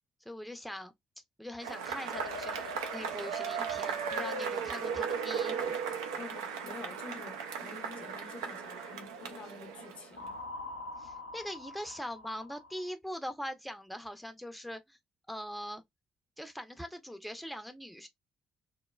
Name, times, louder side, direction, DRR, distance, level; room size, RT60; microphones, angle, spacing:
voice 1, 0.2-0.9 1.4-5.8 11.0-15.0 15.3-15.8 16.4-18.1, equal, ahead, 0.5 m, -42 dB
Cheering / Applause / Crowd, 1.6-10.3, right 6 dB, 75° right, 0.4 m, -36 dB
sound 1, 2.1-5.4 10.2-12.9, left 2 dB, 90° left, 0.4 m, -45 dB
voice 2, 6.1-10.4, left 5 dB, 50° left, 0.6 m, -48 dB
3.1 x 2.1 x 2.2 m
figure-of-eight pair, 45°, 3 cm